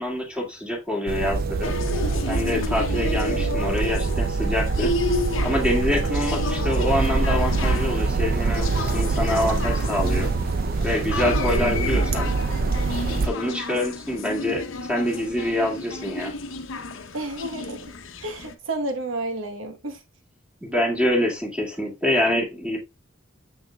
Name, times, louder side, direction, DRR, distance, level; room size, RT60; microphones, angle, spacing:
voice 1, 0.0-1.7 2.2-4.9 5.4-10.3 10.8-12.3 13.1-14.6 14.9-16.3 20.6-22.8, left 1 dB, 5° right, 2.0 m, -25 dB
sound 1, 1.1-13.3, right 3 dB, 50° right, 0.5 m, -24 dB
sound 2, 1.6-18.5, left 3 dB, 85° left, 0.8 m, -32 dB
voice 2, 11.4-12.1 17.1-17.9 18.2-20.0, right 2 dB, 85° right, 1.1 m, -31 dB
7.0 x 6.1 x 2.3 m
head